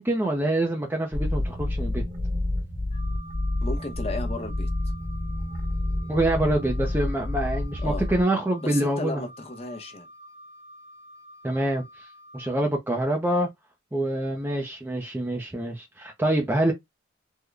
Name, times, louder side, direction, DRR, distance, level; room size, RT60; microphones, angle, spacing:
voice 1, 0.0-2.0 6.1-9.2 11.4-11.8 12.3-13.5 13.9-16.7, right 1 dB, 10° right, 0.5 m, -25 dB
sound 1, 1.1-8.2, left 1 dB, 45° right, 1.1 m, -29 dB
Wind instrument woodwind instrument, 2.9-12.6, equal, 85° right, 1.5 m, -48 dB
voice 2, 3.6-4.7 7.8-8.1 8.6-10.1, left 2 dB, 30° left, 0.7 m, -34 dB
3.6 x 2.1 x 3.2 m
head